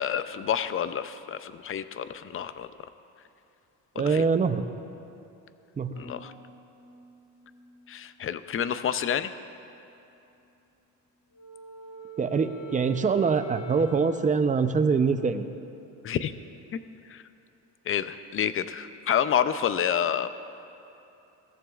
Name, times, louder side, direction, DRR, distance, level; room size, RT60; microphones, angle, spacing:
voice 1, 0.0-2.7 4.0-4.3 6.0-6.3 7.9-9.3 16.0-16.3 16.7-16.8 17.1-17.2 17.9-20.3, left 9 dB, 35° left, 12 dB, 0.6 m, -28 dB
voice 2, 4.0-4.7 5.8-6.0 12.2-15.5, right 5 dB, 20° right, 9 dB, 0.6 m, -24 dB
Harp, 5.9-10.0 10.3-10.9 11.4-11.7, left 1 dB, 55° right, 2.8 m, -55 dB
Wind instrument woodwind instrument, 11.3-15.8, right 5 dB, 90° left, 3.3 m, -43 dB
20.0 x 14.0 x 2.4 m, 2.8 s
cardioid pair, 105°, 35 cm